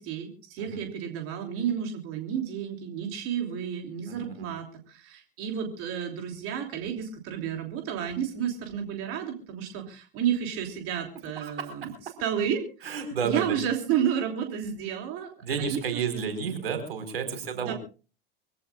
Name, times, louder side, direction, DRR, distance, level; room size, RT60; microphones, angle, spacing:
voice 1, 0.0-11.9 12.2-15.3 15.6-16.3 17.5-17.7, right 9 dB, 50° right, 4 dB, 3.1 m, -31 dB
voice 2, 4.1-4.5 11.4-11.7 12.8-13.6 15.4-17.7, right 6 dB, 85° right, 6 dB, 4.7 m, -31 dB
24.5 x 17.0 x 2.4 m, 0.35 s
hypercardioid pair, 90°, 29 cm